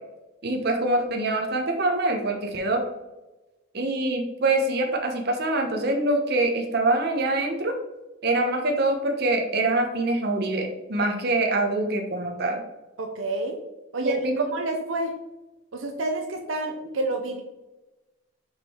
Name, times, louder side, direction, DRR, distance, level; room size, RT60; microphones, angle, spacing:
voice 1, 0.4-2.8 3.7-7.7 8.2-12.6 14.0-14.4, right 2 dB, 55° right, 3 dB, 1.0 m, -24 dB
voice 2, 13.0-13.6 13.9-15.1 15.7-17.4, right 2 dB, 80° right, 3 dB, 0.8 m, -28 dB
5.1 x 4.5 x 4.4 m, 1.0 s
head